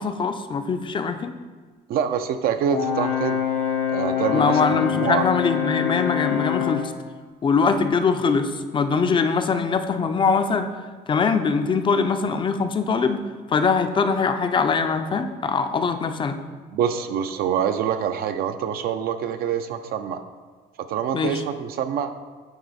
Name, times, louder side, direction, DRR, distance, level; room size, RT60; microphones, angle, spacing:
voice 1, 0.0-1.3 4.2-6.9 7.4-10.7 11.1-16.4 21.1-21.4, left 5 dB, 30° left, 8 dB, 0.4 m, -22 dB
voice 2, 1.9-3.4 3.9-5.3 16.7-20.2 20.9-22.1, right 8 dB, 65° right, 8 dB, 0.4 m, -25 dB
Brass instrument, 2.7-6.9, left 9 dB, 80° left, 1.6 m, -25 dB
8.8 x 3.0 x 4.1 m, 1.4 s
cardioid pair, 110°, 17 cm